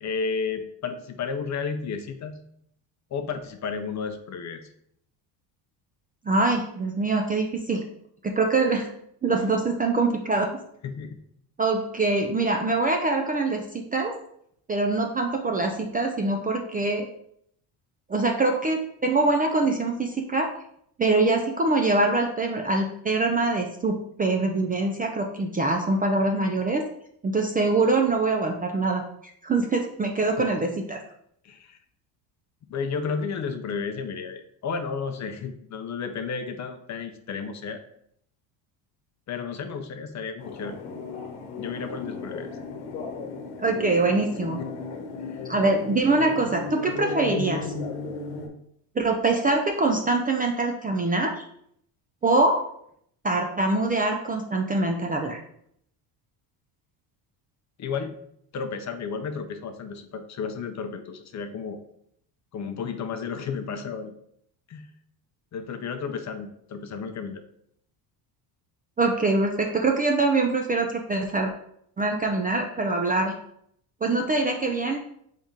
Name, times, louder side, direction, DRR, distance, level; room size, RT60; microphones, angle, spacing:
voice 1, 0.0-2.4 3.1-4.7 10.8-11.2 31.4-31.8 32.7-37.8 39.3-40.8 41.6-42.6 45.3-45.5 57.8-58.2 58.5-61.8 62.5-64.1 64.7-64.9 65.5-67.4, left 5 dB, 35° left, 8 dB, 0.6 m, -32 dB
voice 2, 6.3-7.8 8.2-8.9 9.2-10.6 11.6-14.1 14.7-17.1 18.1-20.5 21.0-26.8 27.2-29.0 29.4-31.0 43.6-44.6 45.5-47.7 49.0-51.4 52.2-52.7 53.2-55.4 69.0-71.5 72.0-73.4 74.0-75.0, right 3 dB, 20° right, 3 dB, 0.4 m, -24 dB
sound 1, 40.4-48.5, left 4 dB, 85° left, 1.0 m, -35 dB
3.6 x 3.5 x 4.1 m, 0.70 s
supercardioid pair, 85°, 50 cm